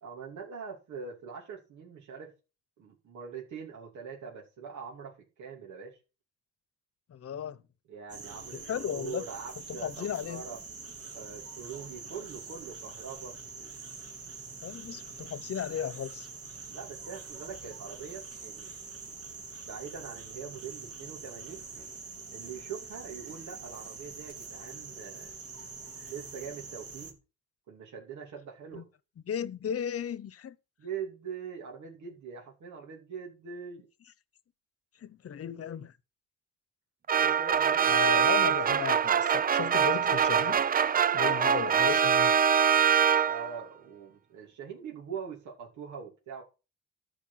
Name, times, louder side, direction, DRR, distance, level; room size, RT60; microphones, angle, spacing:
voice 1, 0.0-2.3 2.8-6.0 7.9-10.6 11.1-13.4 16.7-18.7 19.1-21.7 22.3-25.3 26.1-27.2 27.7-28.9 30.8-33.9 37.1-38.7 43.3-46.4, right 6 dB, 70° right, 3.0 m, -43 dB
voice 2, 7.1-7.6 8.7-9.2 9.7-10.4 14.6-16.3 28.7-28.8 29.3-30.6 35.0-35.9 37.9-40.6 41.1-42.3, left 9 dB, 50° left, 1.1 m, -35 dB
sound 1, 8.1-27.1, right 4 dB, 50° right, 3.5 m, -45 dB
sound 2, 37.1-43.6, right 7 dB, 30° right, 0.5 m, -24 dB
13.5 x 5.0 x 5.9 m
cardioid pair, 90°, 30 cm